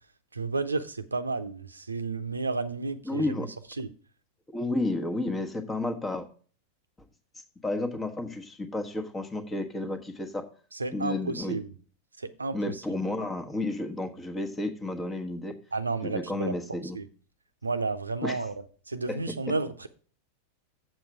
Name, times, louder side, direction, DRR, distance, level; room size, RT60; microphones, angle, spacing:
voice 1, 0.3-3.5 3.8-3.9 10.7-11.7 12.2-12.8 15.7-16.5 16.9-17.0 17.6-18.5 18.9-19.9, right 3 dB, 80° right, 0.7 m, -32 dB
voice 2, 3.1-3.5 4.5-6.3 7.6-10.4 10.9-11.6 12.5-15.5 16.0-17.0 18.2-18.4 19.1-19.2, left 2 dB, 15° left, 1.2 m, -31 dB
7.8 x 7.0 x 4.7 m
figure-of-eight pair, 90°, 0 cm